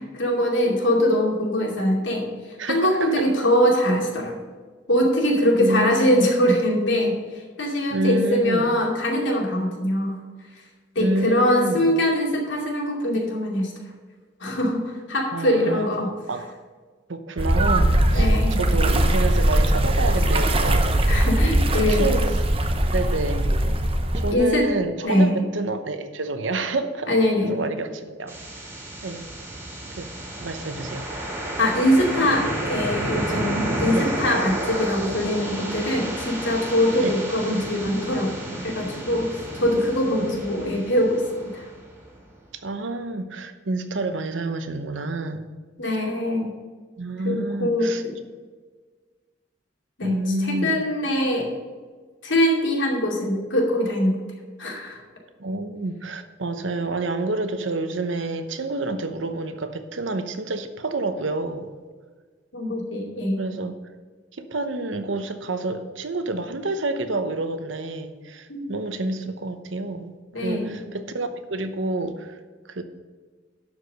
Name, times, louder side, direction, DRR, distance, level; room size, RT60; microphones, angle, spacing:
voice 1, 0.0-4.4 4.9-10.2 10.9-13.7 14.4-16.1 18.1-18.6 21.1-22.1 24.3-24.7 25.0-25.4 27.1-27.6 31.4-38.3 38.6-41.6 45.8-46.5 47.2-48.1 50.0-51.5 52.2-54.2 54.6-55.0 62.5-63.4 68.5-68.7 70.3-70.7, left 1 dB, 80° left, -1 dB, 2.5 m, -22 dB
voice 2, 2.6-3.3 5.6-6.3 7.9-8.7 11.0-11.9 15.3-15.9 16.3-16.5 17.1-21.3 21.8-22.4 22.9-23.5 24.1-27.1 27.4-28.4 29.0-29.3 30.0-30.1 30.4-31.1 33.9-34.1 37.0-37.1 39.7-40.3 42.5-45.5 47.0-48.0 50.0-50.7 55.4-61.7 63.4-63.8 64.4-70.1 70.4-72.4 72.7-72.8, right 2 dB, 85° right, 9 dB, 0.9 m, -28 dB
sound 1, 17.4-24.3, right 1 dB, 30° right, 0.8 m, -20 dB
sound 2, 28.3-42.1, right 1 dB, 15° right, 2.4 m, -31 dB
11.5 x 4.8 x 6.7 m, 1.5 s
head